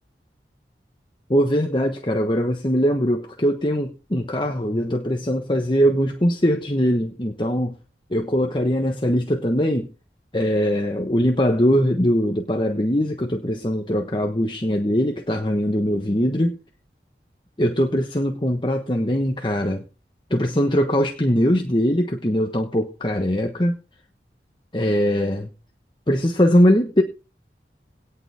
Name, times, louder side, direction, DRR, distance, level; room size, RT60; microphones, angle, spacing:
voice 1, 1.3-7.8 8.1-9.9 10.3-16.6 17.6-19.8 20.3-23.8 24.7-25.5 26.1-27.0, equal, 25° left, 1.2 m, -21 dB
18.0 x 6.8 x 3.5 m
head